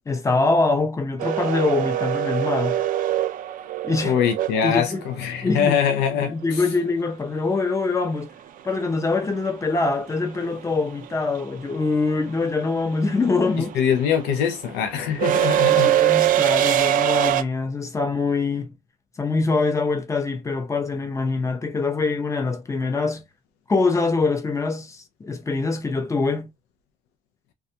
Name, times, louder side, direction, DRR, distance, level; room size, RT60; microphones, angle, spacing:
voice 1, 0.1-2.8 3.8-4.2 4.6-5.0 5.4-5.8 6.1-8.3 8.6-13.8 15.6-18.7 19.2-23.2 23.7-26.5, left 3 dB, 20° left, 0.6 m, -24 dB
sound 1, 1.2-5.3 7.7-7.8 9.1-9.4 9.6-17.4, right 12 dB, 55° right, 0.4 m, -23 dB
voice 2, 4.0-6.6 13.7-15.9, left 8 dB, 85° left, 0.5 m, -23 dB
2.3 x 2.2 x 2.7 m
cardioid pair, 110°, 17 cm